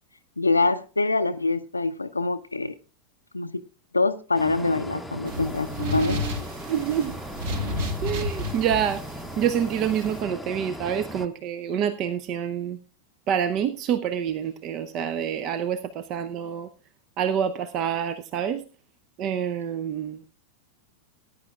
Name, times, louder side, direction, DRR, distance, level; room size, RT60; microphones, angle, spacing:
voice 1, 0.4-2.8 3.3-3.6 3.9-6.2, left 3 dB, 80° left, 9 dB, 0.5 m, -25 dB
sound 1, 4.3-11.3, equal, ahead, 0.9 m, -38 dB
sound 2, 5.3-10.2, left 1 dB, 55° right, 1.8 m, -32 dB
voice 2, 6.7-7.1 8.0-12.8 13.3-16.7 17.2-18.6 19.2-20.3, right 8 dB, 35° right, 14 dB, 0.6 m, -27 dB
19.0 x 10.0 x 2.4 m, 0.34 s
figure-of-eight pair, 90°, 0 cm